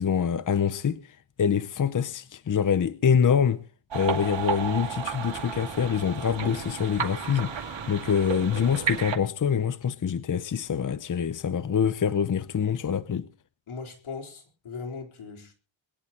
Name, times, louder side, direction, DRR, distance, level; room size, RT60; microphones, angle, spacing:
voice 1, 0.0-3.6 3.9-13.3, left 7 dB, 40° left, 0.8 m, -25 dB
sound 1, 3.9-9.2, right 6 dB, 65° right, 2.3 m, -32 dB
voice 2, 13.7-15.5, left 4 dB, 85° left, 4.1 m, -39 dB
22.5 x 11.0 x 4.2 m
wide cardioid pair, 110°, 47 cm